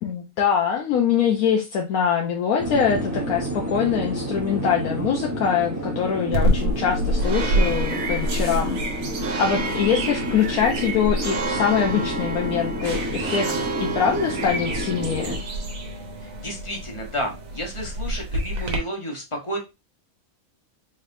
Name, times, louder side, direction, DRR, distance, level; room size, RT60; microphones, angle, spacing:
voice 1, 0.0-8.8 9.4-13.5 13.8-15.4, left 7 dB, 80° left, 0 dB, 1.1 m, -23 dB
sound 1, 2.6-15.4, equal, 15° right, 0.8 m, -30 dB
sound 2, 6.3-18.8, right 1 dB, 70° right, 1.3 m, -27 dB
voice 2, 16.2-19.6, equal, 25° left, 1 dB, 0.9 m, -31 dB
4.0 x 3.2 x 2.5 m, 0.25 s
omnidirectional pair, 1.5 m